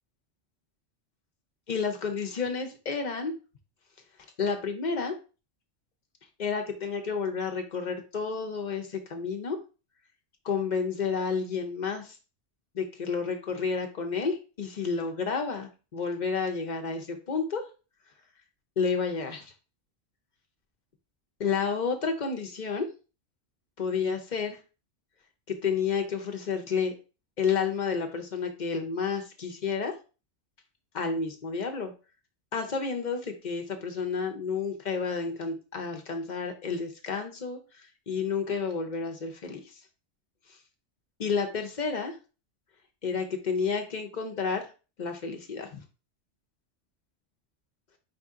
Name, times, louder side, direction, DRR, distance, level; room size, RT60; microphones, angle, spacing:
voice 1, 1.7-3.3 4.4-5.1 6.4-9.6 10.4-12.2 12.7-17.6 18.8-19.5 21.4-22.9 23.8-24.6 25.5-26.9 27.4-29.9 30.9-31.9 32.5-39.6 41.2-42.1 43.0-44.7 45.0-45.8, left 5 dB, 45° left, 5 dB, 0.8 m, -30 dB
5.1 x 2.7 x 3.6 m, 0.33 s
omnidirectional pair, 1.2 m